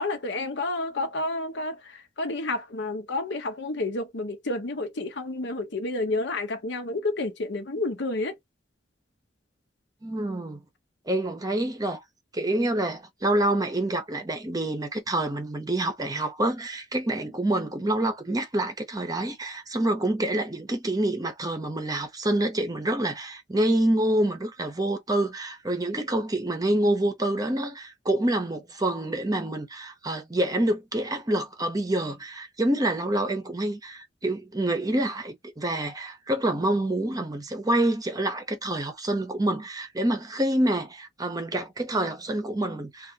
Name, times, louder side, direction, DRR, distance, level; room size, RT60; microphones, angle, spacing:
voice 1, 0.0-8.4, left 2 dB, 70° left, 0.8 m, -30 dB
voice 2, 10.0-10.6 11.1-12.0 12.3-43.1, right 1 dB, 20° right, 0.7 m, -27 dB
3.4 x 2.4 x 2.6 m
head